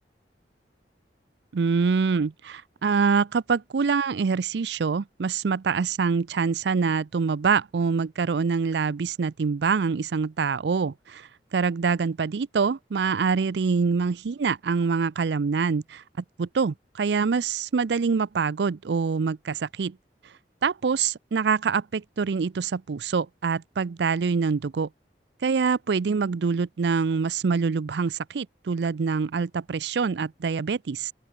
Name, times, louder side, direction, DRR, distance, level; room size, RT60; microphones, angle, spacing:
voice 1, 1.5-16.0 16.4-20.0 20.6-24.9 25.4-31.1, right 5 dB, 70° right, 0.5 m, -25 dB
open air
head